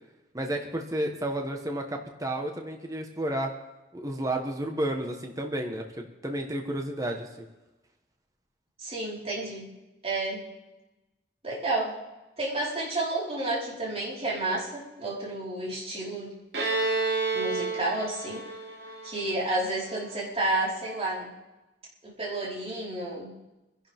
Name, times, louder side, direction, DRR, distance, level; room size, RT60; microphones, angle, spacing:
voice 1, 0.3-3.5 3.9-7.5, right 1 dB, 20° right, 3 dB, 1.4 m, -31 dB
voice 2, 8.8-9.7 10.0-10.4 11.4-12.0 12.4-16.3 17.3-18.4 19.0-21.3 22.0-23.3, right 2 dB, 35° right, -6 dB, 4.8 m, -31 dB
Bowed string instrument, 16.5-20.1, right 3 dB, 70° right, 3.4 m, -30 dB
26.0 x 11.5 x 3.7 m, 1.1 s
head